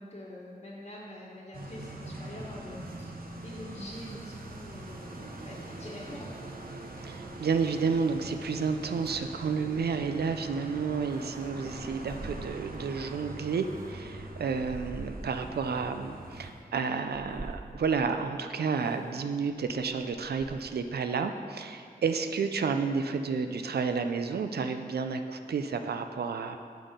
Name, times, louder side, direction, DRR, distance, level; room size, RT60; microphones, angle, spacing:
voice 1, 0.0-2.8 3.4-6.3, left 1 dB, 40° left, -8 dB, 1.3 m, -44 dB
sound 1, 1.5-16.5, right 2 dB, 65° right, 0.7 m, -43 dB
voice 2, 7.0-26.6, right 5 dB, 90° right, 7 dB, 0.4 m, -31 dB
sound 2, 9.1-10.2 11.1-13.0 13.5-15.7 16.3-16.5 17.1-18.2 18.8-19.1 19.5-20.9, right 2 dB, 20° right, 0.5 m, -46 dB
7.1 x 5.7 x 5.1 m, 2.3 s
wide cardioid pair, 65°, 16 cm